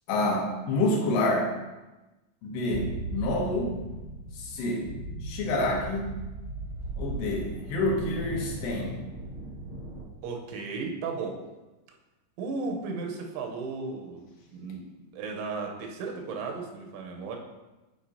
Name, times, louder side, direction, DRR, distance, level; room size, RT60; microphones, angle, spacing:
voice 1, 0.1-1.5 2.4-3.7 4.3-4.9 5.2-6.1 7.0-9.0, left 2 dB, 80° left, -1 dB, 3.5 m, -28 dB
sound 1, 2.7-10.0, right 2 dB, 60° right, 1.1 m, -37 dB
voice 2, 10.2-11.4 12.4-17.4, right 4 dB, 90° right, 2 dB, 3.3 m, -35 dB
11.5 x 4.6 x 2.8 m, 1.1 s
omnidirectional pair, 5.4 m